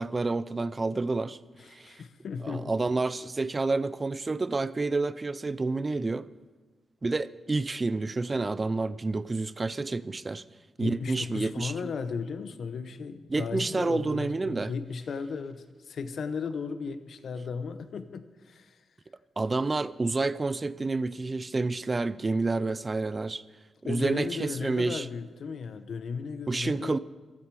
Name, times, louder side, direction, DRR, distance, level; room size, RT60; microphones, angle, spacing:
voice 1, 0.0-1.4 1.7-1.9 2.4-6.3 7.0-10.4 10.8-11.9 13.3-14.7 19.4-23.4 23.9-25.1 26.5-27.0, right 3 dB, 30° right, 0.5 m, -29 dB
voice 2, 1.6-2.7 10.8-18.8 23.8-27.0, left 5 dB, 65° left, 0.9 m, -35 dB
15.5 x 13.0 x 4.8 m
cardioid pair, 95°, 0 cm